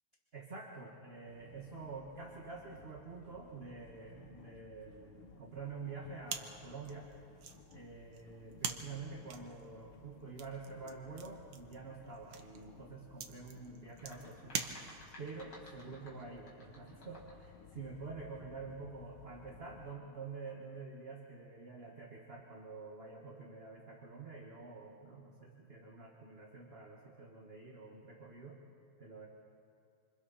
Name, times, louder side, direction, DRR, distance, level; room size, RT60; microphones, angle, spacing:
voice 1, 0.3-7.1 7.7-14.7 15.2-28.6 29.0-29.3, right 4 dB, 30° right, -1 dB, 1.7 m, -48 dB
sound 1, 1.3-19.9, left 5 dB, 90° left, 2.0 m, -59 dB
sound 2, 6.3-15.3, right 7 dB, 80° right, 2.0 m, -45 dB
sound 3, 13.8-17.5, left 1 dB, 70° left, 5.2 m, -57 dB
27.0 x 26.5 x 4.2 m, 2.4 s
omnidirectional pair, 2.4 m